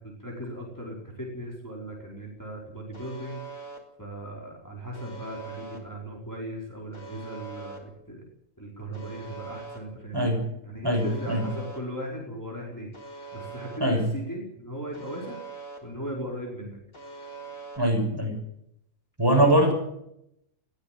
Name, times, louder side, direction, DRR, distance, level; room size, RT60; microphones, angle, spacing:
voice 1, 0.0-3.4 4.0-8.2 8.6-10.3 10.6-12.9 13.3-15.4 15.8-16.8, right 1 dB, 10° left, -2 dB, 5.1 m, -37 dB
Alarm, 2.9-3.8 4.9-5.8 6.9-7.8 8.9-9.8 10.9-11.8 12.9-13.8 14.9-15.8 16.9-17.8, right 4 dB, 70° left, 4.7 m, -42 dB
voice 2, 10.1-10.5 10.8-11.4 13.8-14.1 17.8-18.4 19.2-19.7, right 1 dB, 15° right, 2 dB, 6.7 m, -22 dB
21.0 x 16.5 x 7.8 m, 0.77 s
omnidirectional pair, 1.5 m